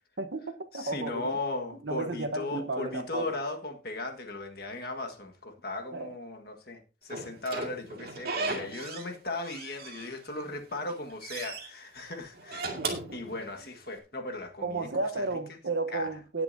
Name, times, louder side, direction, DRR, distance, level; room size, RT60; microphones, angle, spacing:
voice 1, 0.2-1.3 1.8-3.4 5.9-6.1 12.8-13.0 14.6-16.4, right 2 dB, 70° right, 1.1 m, -33 dB
voice 2, 0.7-12.8 13.1-14.9 15.2-15.3 15.9-16.1, left 2 dB, 55° left, 1.6 m, -37 dB
Slam / Squeak, 7.1-9.1 9.4-10.4 10.8-11.7 12.3-13.9, right 3 dB, 55° right, 2.2 m, -36 dB
18.5 x 6.8 x 2.7 m
head